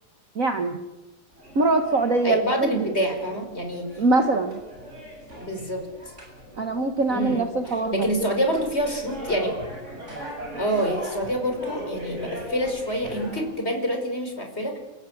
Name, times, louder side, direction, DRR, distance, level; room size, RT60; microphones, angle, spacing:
voice 1, 0.3-0.8 1.5-2.9 4.0-4.6 6.6-8.1, right 3 dB, 50° right, 6 dB, 0.9 m, -23 dB
sound 1, 1.3-13.4, right 1 dB, 20° right, 8.3 m, -39 dB
voice 2, 2.2-4.0 5.4-5.9 7.1-7.5 7.9-9.6 10.6-14.8, equal, 20° left, 4 dB, 4.7 m, -27 dB
29.0 x 16.5 x 8.6 m, 1.1 s
omnidirectional pair, 3.6 m